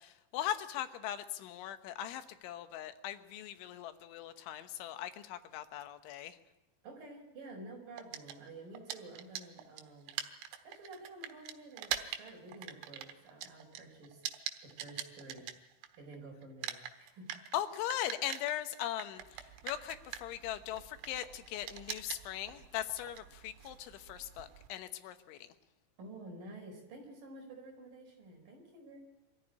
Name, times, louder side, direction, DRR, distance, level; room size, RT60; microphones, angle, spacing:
voice 1, 0.0-6.4 17.5-25.5, left 12 dB, 90° left, 9 dB, 3.6 m, -40 dB
voice 2, 6.8-10.2 10.6-14.2 14.6-15.5 16.0-17.4 26.0-29.0, right 2 dB, 50° right, 1 dB, 6.2 m, -50 dB
sound 1, 8.0-16.2 16.4-24.7, right 11 dB, 85° right, 3.5 m, -43 dB
23.5 x 14.5 x 9.9 m, 0.98 s
omnidirectional pair, 5.3 m